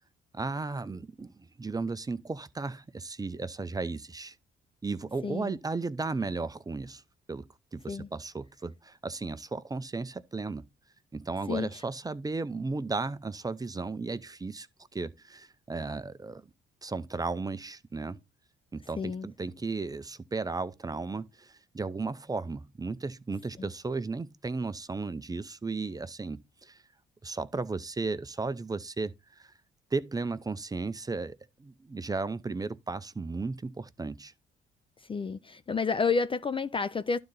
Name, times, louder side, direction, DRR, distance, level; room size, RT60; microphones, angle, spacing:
voice 1, 0.3-4.4 4.8-7.0 7.3-10.7 11.1-14.7 14.9-16.4 16.8-18.2 18.7-26.8 27.2-29.5 29.9-34.3, right 3 dB, 20° right, 0.6 m, -35 dB
voice 2, 5.2-5.6 7.9-8.1 11.5-11.8 19.0-19.3 23.6-23.7 35.0-37.2, left 5 dB, 25° left, 0.4 m, -30 dB
11.5 x 3.9 x 3.9 m
cardioid pair, 90°, 20 cm